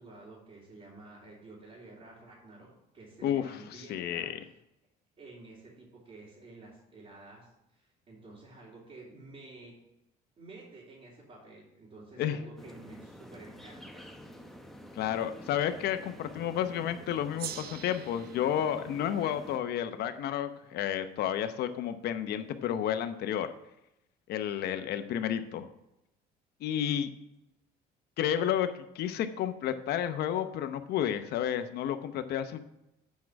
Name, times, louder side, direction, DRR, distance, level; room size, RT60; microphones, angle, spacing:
voice 1, 0.0-2.7 2.9-4.3 5.2-9.7 10.4-14.0, right 2 dB, 40° right, -8 dB, 3.4 m, -51 dB
voice 2, 3.2-4.4 12.2-12.4 14.9-23.5 24.3-25.7 26.6-27.1 28.2-32.6, left 10 dB, 70° left, 9 dB, 0.8 m, -31 dB
sound 1, 12.6-19.6, equal, ahead, 0.9 m, -49 dB
Gong, 17.4-22.1, right 10 dB, 65° right, 0.7 m, -47 dB
8.5 x 4.7 x 7.4 m, 0.87 s
cardioid pair, 110°, 17 cm